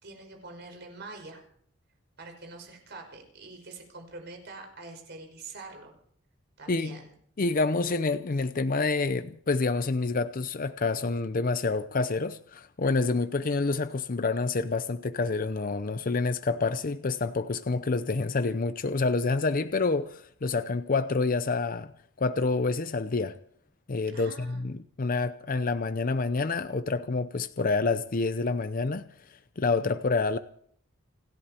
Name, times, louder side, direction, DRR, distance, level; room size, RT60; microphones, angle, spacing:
voice 1, 0.0-1.4 2.2-6.0 6.6-7.1 24.1-24.6, right 3 dB, 55° right, 5.5 m, -45 dB
voice 2, 7.4-21.9 22.2-23.3 23.9-29.1 29.6-30.4, left 3 dB, 45° left, 0.6 m, -28 dB
29.5 x 11.0 x 4.4 m
head